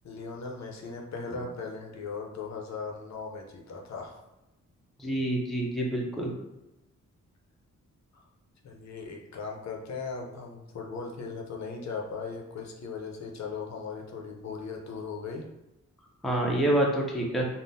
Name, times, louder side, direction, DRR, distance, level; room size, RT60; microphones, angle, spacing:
voice 1, 0.0-4.2 8.1-8.2 8.6-15.4, left 4 dB, 65° left, 0 dB, 0.6 m, -38 dB
voice 2, 5.0-6.3 16.2-17.5, right 1 dB, ahead, -1 dB, 0.4 m, -27 dB
3.6 x 2.0 x 2.6 m, 0.96 s
wide cardioid pair, 130°, 30 cm